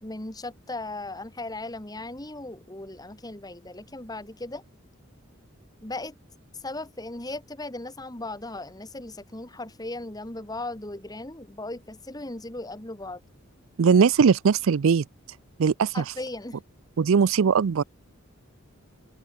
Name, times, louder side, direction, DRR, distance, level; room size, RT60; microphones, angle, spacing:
voice 1, 0.0-4.6 5.8-6.1 6.5-13.2 15.9-16.6, left 2 dB, 20° left, 1.8 m, -37 dB
voice 2, 13.8-15.0 15.6-15.9 17.0-17.8, right 6 dB, 75° right, 0.4 m, -20 dB
open air
head